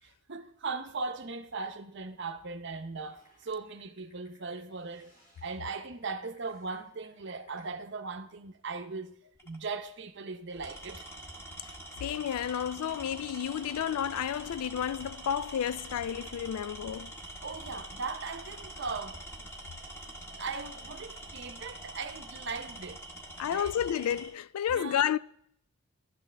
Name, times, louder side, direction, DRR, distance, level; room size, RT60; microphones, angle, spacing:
voice 1, 0.0-5.1 5.4-9.2 9.4-11.1 17.4-19.2 20.3-23.0 23.5-23.7 24.7-25.1, right 4 dB, 50° right, 0.7 m, -39 dB
Typing, 2.9-7.7, equal, 40° left, 3.5 m, -64 dB
Tools, 9.4-9.7 10.5-24.3, right 1 dB, 10° left, 1.3 m, -45 dB
voice 2, 12.0-17.1 23.4-25.2, left 9 dB, 85° left, 0.3 m, -31 dB
12.5 x 11.5 x 3.4 m
head